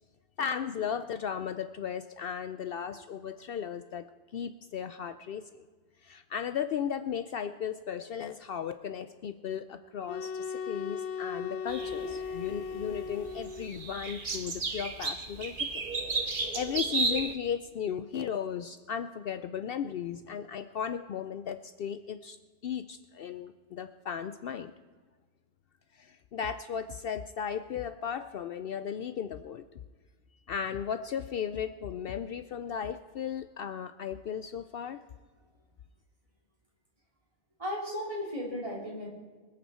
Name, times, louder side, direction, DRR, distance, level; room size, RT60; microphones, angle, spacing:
voice 1, 0.4-5.6 6.0-15.8 16.2-22.4 22.6-24.7 25.9-29.6 30.5-35.0, left 8 dB, 65° left, 11 dB, 0.7 m, -36 dB
sound 1, 10.0-14.0, left 6 dB, 90° left, 1.0 m, -37 dB
sound 2, 11.7-17.3, right 3 dB, 50° right, 1.4 m, -34 dB
voice 2, 37.6-39.1, left 1 dB, 30° right, -3 dB, 3.3 m, -35 dB
25.0 x 8.5 x 4.4 m, 1.5 s
omnidirectional pair, 1.2 m